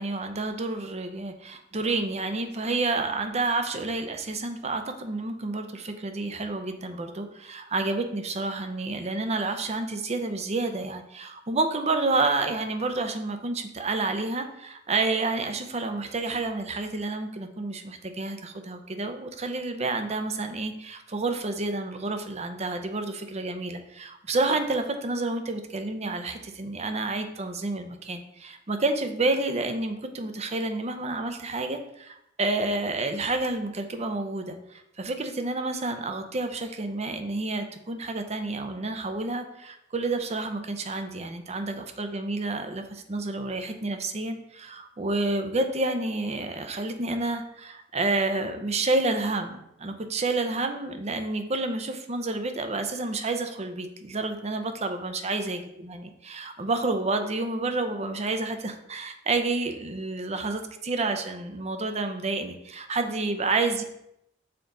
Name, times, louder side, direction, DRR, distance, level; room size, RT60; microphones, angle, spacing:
voice 1, 0.0-63.8, right 3 dB, 35° right, 7 dB, 0.6 m, -29 dB
6.7 x 4.0 x 3.8 m, 0.79 s
head